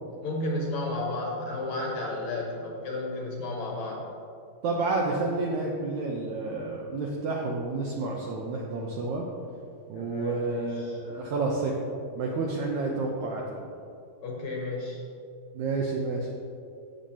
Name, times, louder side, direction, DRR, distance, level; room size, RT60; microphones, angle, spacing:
voice 1, 0.2-4.0 9.9-11.0 14.2-15.0, left 2 dB, 65° left, -2 dB, 2.1 m, -33 dB
voice 2, 4.6-9.3 9.9-11.7 12.2-13.7 15.5-16.3, right 3 dB, 90° right, -1 dB, 1.7 m, -30 dB
14.5 x 8.3 x 2.9 m, 2.5 s
omnidirectional pair, 4.4 m